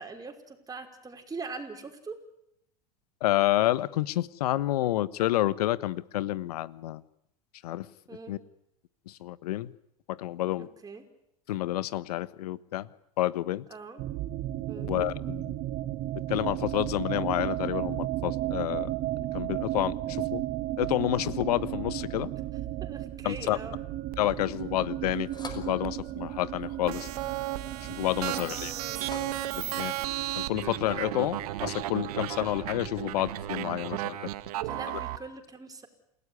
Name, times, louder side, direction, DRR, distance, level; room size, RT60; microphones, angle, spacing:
voice 1, 0.0-2.2 8.1-8.3 10.8-11.1 13.7-14.0 14.7-14.9 22.8-23.8 28.2-29.1 34.5-35.9, right 4 dB, 20° right, 4 dB, 5.4 m, -42 dB
voice 2, 3.2-7.0 7.6-7.9 8.3-8.4 9.1-9.7 10.1-10.7 11.5-12.9 13.2-13.6 14.8-15.6 16.3-18.9 19.2-20.4 20.8-22.3 23.2-23.6 24.2-27.1 27.8-28.7 29.5-29.9 30.3-34.3, left 14 dB, 75° left, 17 dB, 1.3 m, -29 dB
sound 1, 14.0-33.8, right 15 dB, 50° right, 1.8 m, -35 dB
sound 2, 24.3-31.7, left 4 dB, 20° left, 5.5 m, -50 dB
sound 3, 26.9-35.2, right 15 dB, 75° right, 1.9 m, -34 dB
28.5 x 17.5 x 9.9 m, 0.79 s
hypercardioid pair, 90°, 20 cm